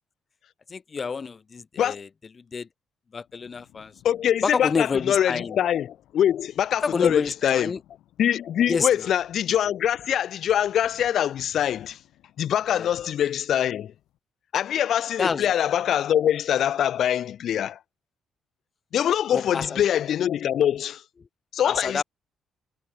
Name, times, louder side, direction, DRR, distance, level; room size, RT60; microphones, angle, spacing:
voice 1, 0.7-2.1 2.4-2.7 3.1-3.9 4.4-5.6 6.8-7.8 8.7-9.1 12.8-12.9 15.2-15.5 19.3-19.8 21.6-22.0, left 5 dB, 40° left, 0.7 m, -28 dB
sound 1, 3.2-14.2, left 14 dB, 85° left, 1.4 m, -57 dB
voice 2, 4.0-7.7 8.2-12.0 12.4-13.9 14.5-17.8 18.9-21.0 21.5-22.0, left 10 dB, 70° left, 0.3 m, -24 dB
cardioid pair, 90°, 0 cm